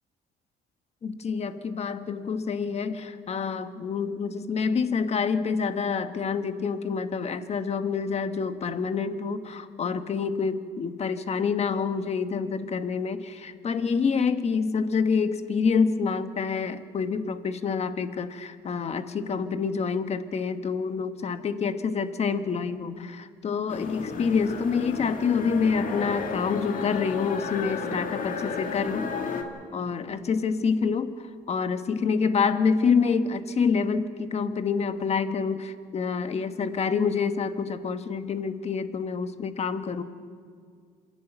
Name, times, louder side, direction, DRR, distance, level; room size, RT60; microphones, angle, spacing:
voice 1, 1.0-29.1 29.7-40.0, left 5 dB, 40° left, 10 dB, 1.2 m, -27 dB
sound 1, 23.7-29.4, left 5 dB, 55° left, 2.1 m, -33 dB
26.5 x 11.0 x 9.0 m, 2.1 s
cardioid pair, 110°, 17 cm